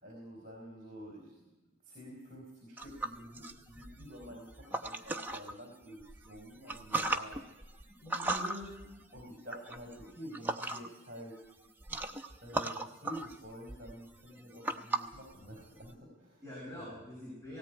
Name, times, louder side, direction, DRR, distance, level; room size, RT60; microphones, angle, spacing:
voice 1, 0.0-1.5 1.8-7.4 9.1-11.3 12.4-16.4 16.8-17.0, equal, 40° right, 1 dB, 4.2 m, -49 dB
sound 1, 2.8-5.5 6.0-11.1 11.4-15.9, right 2 dB, 10° right, 0.8 m, -38 dB
voice 2, 8.0-8.9 16.4-17.6, left 1 dB, 15° left, -5 dB, 6.7 m, -44 dB
18.0 x 17.5 x 9.2 m, 1.1 s
head